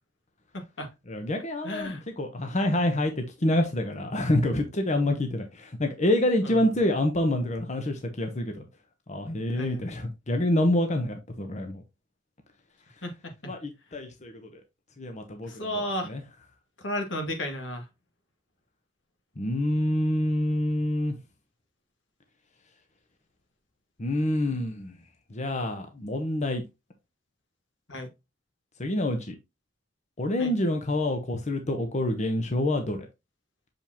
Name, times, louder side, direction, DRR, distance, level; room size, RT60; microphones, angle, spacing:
voice 1, 0.5-0.9 1.6-2.0 6.4-6.6 9.5-9.8 13.0-13.5 15.5-16.1 16.8-17.8 27.9-28.1 30.4-30.5, left 1 dB, 75° left, 2.2 m, -33 dB
voice 2, 1.1-8.5 9.1-11.8 13.4-14.6 15.0-15.7 16.0-16.2 19.4-21.1 24.0-24.9 25.3-26.6 28.8-29.4 30.2-33.1, left 1 dB, 40° left, 1.0 m, -27 dB
7.0 x 5.4 x 2.9 m
head